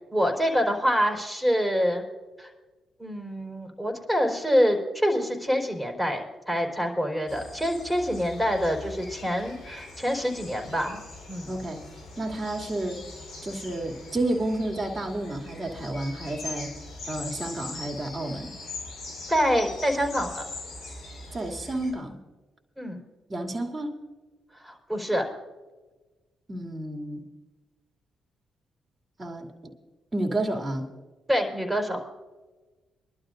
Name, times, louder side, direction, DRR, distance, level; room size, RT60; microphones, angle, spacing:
voice 1, 0.1-2.0 2.4-2.5 3.0-11.0 11.3-11.5 19.3-20.4 22.8-23.0 24.6-25.3 31.3-32.0, equal, 5° right, 2 dB, 4.3 m, -26 dB
sound 1, 7.3-21.9, left 2 dB, 75° left, 4.9 m, -41 dB
voice 2, 11.4-11.8 12.2-13.0 13.4-16.7 17.1-18.5 21.3-22.2 23.3-23.9 26.5-27.2 29.2-29.7 30.1-30.9, right 1 dB, 30° right, 1 dB, 2.7 m, -31 dB
24.5 x 12.0 x 2.6 m, 1.2 s
supercardioid pair, 50°, 0 cm